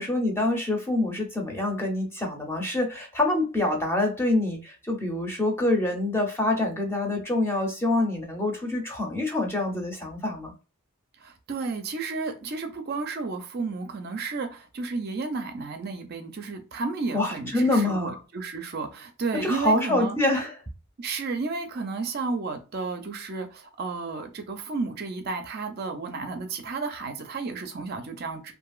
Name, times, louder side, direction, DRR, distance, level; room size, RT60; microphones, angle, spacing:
voice 1, 0.0-10.5 17.1-18.2 19.4-20.5, left 2 dB, 10° left, 0.7 m, -26 dB
voice 2, 11.2-20.2 21.0-28.5, right 4 dB, 45° right, 0.5 m, -32 dB
2.8 x 2.6 x 2.3 m
head